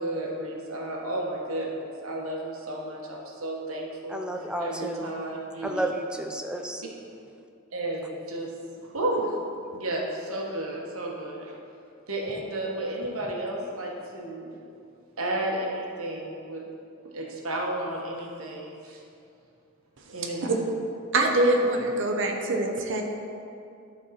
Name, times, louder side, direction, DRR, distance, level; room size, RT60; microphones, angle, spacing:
voice 1, 0.0-4.2 4.6-5.9 7.7-8.5 8.8-9.4 9.7-11.5 12.1-14.6 15.2-16.6 17.1-19.0 20.1-20.5, right 1 dB, 80° right, -2 dB, 1.3 m, -32 dB
voice 2, 4.1-5.1 5.6-6.8, right 1 dB, 5° right, 3 dB, 0.5 m, -31 dB
voice 3, 21.1-23.0, right 2 dB, 60° right, 2 dB, 0.8 m, -24 dB
11.0 x 4.6 x 4.2 m, 2.6 s
head